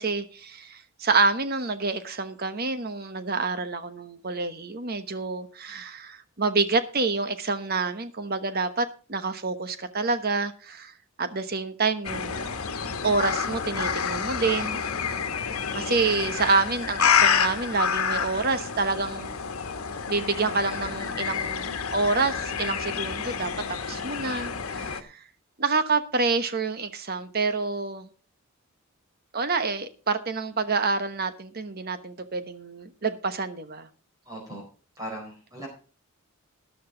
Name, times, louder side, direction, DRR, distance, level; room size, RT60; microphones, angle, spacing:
voice 1, 0.0-10.9 11.2-12.4 13.0-15.2 15.7-19.3 20.1-23.5 23.9-25.2 25.6-28.1 29.3-33.9, right 4 dB, 45° right, 1.1 m, -27 dB
sound 1, 12.0-25.0, left 6 dB, 80° left, 1.3 m, -28 dB
voice 2, 34.2-34.6 35.0-35.7, right 1 dB, 15° right, 4.6 m, -38 dB
13.0 x 11.0 x 3.9 m
head